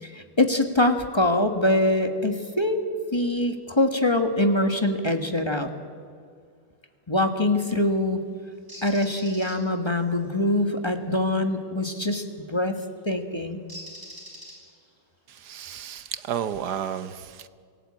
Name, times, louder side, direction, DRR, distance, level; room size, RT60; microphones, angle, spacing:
voice 1, 0.0-5.7 7.1-8.2 8.8-13.6, left 1 dB, 15° left, 6 dB, 1.1 m, -24 dB
Bird, 8.7-9.6 12.2-12.4 13.7-14.9, equal, 10° right, 4.7 m, -42 dB
voice 2, 15.3-17.5, right 9 dB, 60° right, 13 dB, 1.2 m, -32 dB
26.0 x 17.0 x 8.7 m, 2.2 s
omnidirectional pair, 2.3 m